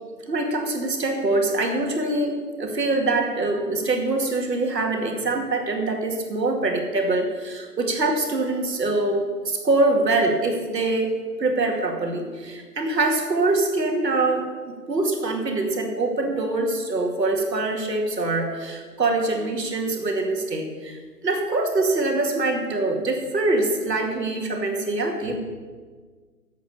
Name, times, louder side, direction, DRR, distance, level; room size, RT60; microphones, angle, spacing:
voice 1, 0.3-11.1 11.4-25.4, right 2 dB, 80° right, 3 dB, 2.6 m, -24 dB
11.0 x 8.2 x 7.0 m, 1.5 s
hypercardioid pair, 175°, 48 cm